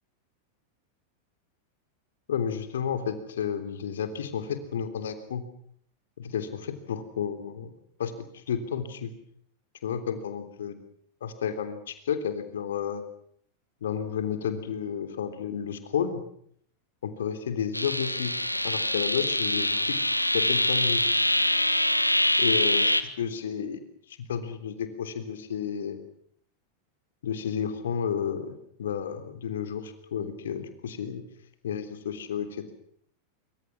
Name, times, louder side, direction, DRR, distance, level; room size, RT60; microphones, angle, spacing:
voice 1, 2.3-5.4 6.2-7.7 8.0-9.1 9.8-10.7 11.2-13.0 13.8-16.2 17.0-18.3 18.6-20.0 20.3-21.0 22.4-23.8 24.1-26.0 27.2-31.2 31.6-32.7, left 8 dB, 60° left, 10 dB, 3.5 m, -31 dB
sound 1, 17.7-23.0, left 1 dB, 85° left, 1.6 m, -24 dB
26.0 x 25.0 x 6.1 m, 0.65 s
figure-of-eight pair, 90°, 0 cm